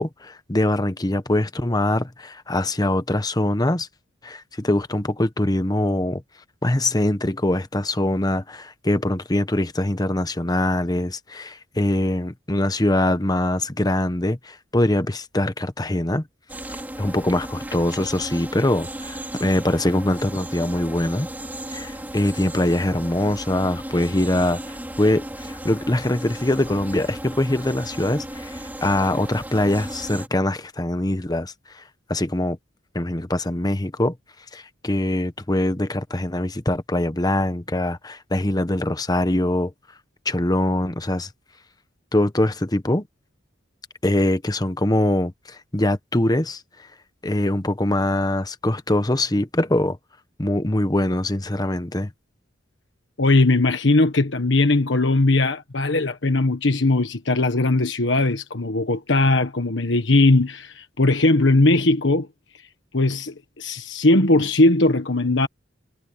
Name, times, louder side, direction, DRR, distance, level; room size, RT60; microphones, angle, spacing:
voice 1, 0.0-3.9 4.2-6.2 6.6-16.2 17.0-21.3 21.7-24.6 25.0-31.5 32.1-32.6 32.9-34.1 34.5-39.7 40.2-41.3 42.1-43.1 44.0-46.6 47.2-50.0 50.4-52.1, left 1 dB, 20° left, 1.1 m, -23 dB
sound 1, 16.5-30.3, right 1 dB, 10° right, 2.6 m, -35 dB
voice 2, 53.2-62.3 62.9-65.5, left 2 dB, 70° left, 1.4 m, -19 dB
head